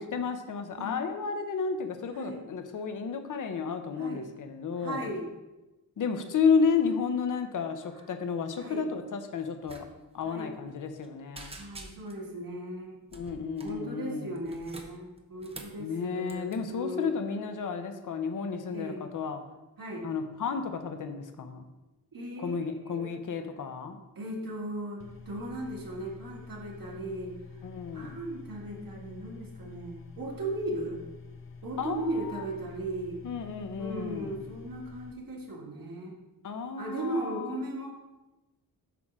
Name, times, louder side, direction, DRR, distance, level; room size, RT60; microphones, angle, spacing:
voice 1, 0.1-5.1 6.0-9.9 10.1-11.5 13.1-14.4 15.8-19.4 20.0-21.6 22.4-24.0 27.6-28.2 31.8-32.4 33.2-34.4 36.4-37.6, left 5 dB, 55° left, 7 dB, 0.8 m, -32 dB
voice 2, 2.1-2.4 4.0-4.3 4.8-5.2 8.6-8.8 10.2-10.5 11.6-13.0 13.6-17.2 18.7-19.1 19.8-20.1 22.1-23.2 24.2-27.3 27.9-31.0 31.6-33.2 33.8-36.2 36.8-37.9, right 1 dB, 65° right, -2 dB, 1.8 m, -37 dB
sound 1, 9.6-9.8 10.1-10.3 10.7-11.1 11.3-12.3 13.1-13.8 14.4-15.8 16.3-16.6, right 2 dB, 15° right, 0.7 m, -47 dB
sound 2, 25.0-35.1, left 4 dB, 35° left, 0.4 m, -48 dB
8.2 x 3.8 x 6.0 m, 1.0 s
wide cardioid pair, 175°, 36 cm